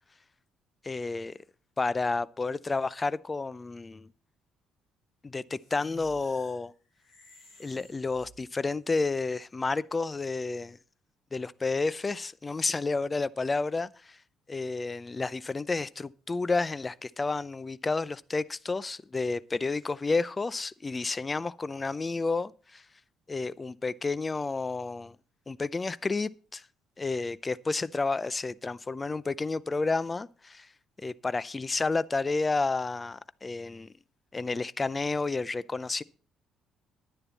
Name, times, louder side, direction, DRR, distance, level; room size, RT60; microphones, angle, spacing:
voice 1, 0.8-1.4 1.8-4.1 5.2-6.7 7.6-10.8 11.3-14.2 14.5-22.8 23.3-25.2 25.5-26.6 27.0-30.7 31.0-33.9 34.3-36.0, left 3 dB, 25° left, 0.6 m, -31 dB
sound 1, 5.5-8.8, left 1 dB, 65° left, 7.1 m, -55 dB
11.0 x 9.9 x 4.1 m
hypercardioid pair, 45°, 0 cm